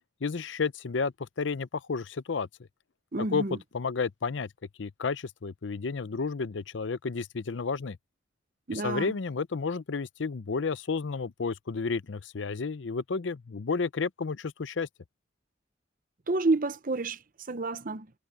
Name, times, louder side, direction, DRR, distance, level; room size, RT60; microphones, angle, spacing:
voice 1, 0.2-2.5 3.2-4.5 4.8-8.0 8.7-14.9, left 4 dB, 85° left, 0.6 m, -31 dB
voice 2, 3.1-3.6 8.7-9.1 16.3-17.2 17.5-18.1, right 2 dB, 45° right, 0.8 m, -29 dB
head